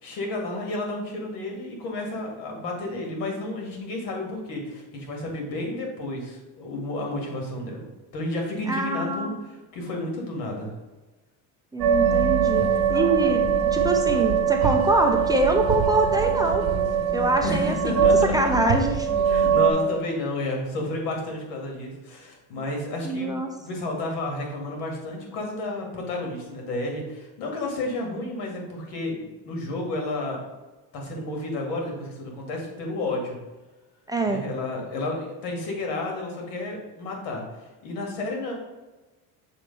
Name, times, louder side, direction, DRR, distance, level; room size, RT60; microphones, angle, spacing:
voice 1, 0.0-7.9 8.1-10.7 17.4-18.3 19.3-30.4 30.9-33.4 34.2-38.5, left 2 dB, 90° left, 1 dB, 2.1 m, -31 dB
voice 2, 8.7-9.3 11.7-16.6 17.1-18.1 18.3-19.1 23.0-23.5 34.1-34.5, right 1 dB, 10° right, 3 dB, 0.4 m, -25 dB
sound 1, 11.8-19.7, right 7 dB, 60° right, 1.3 m, -22 dB
6.8 x 3.0 x 5.3 m, 1.2 s
cardioid pair, 140°, 39 cm